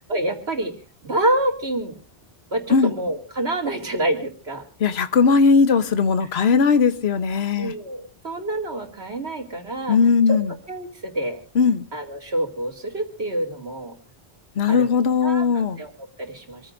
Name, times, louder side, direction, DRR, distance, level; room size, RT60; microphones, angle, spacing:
voice 1, 0.1-0.7 1.0-1.9 2.5-4.6 7.6-10.0 10.3-10.4 10.7-11.4 11.9-13.9 14.7-15.9 16.2-16.6, right 1 dB, 75° right, 2.8 m, -27 dB
voice 2, 4.8-7.7 9.9-10.5 11.5-11.8 14.6-15.8, left 5 dB, 75° left, 1.2 m, -18 dB
27.0 x 14.5 x 2.6 m
omnidirectional pair, 1.1 m